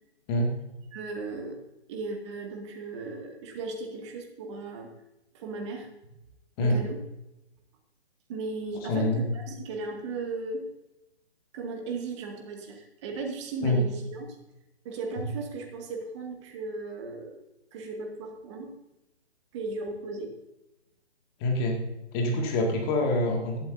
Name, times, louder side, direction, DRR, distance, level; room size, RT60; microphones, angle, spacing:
voice 1, 0.9-1.6 1.9-4.9 5.3-6.1 6.6-7.0 8.3-10.7 11.5-14.4 14.8-17.4 17.7-18.8 19.5-20.3, right 3 dB, 25° right, 2 dB, 2.1 m, -36 dB
voice 2, 8.9-9.2 13.6-13.8 21.4-21.8 22.1-23.6, left 1 dB, 20° left, 1 dB, 2.2 m, -25 dB
16.5 x 12.5 x 2.7 m, 0.93 s
figure-of-eight pair, 140°, 33 cm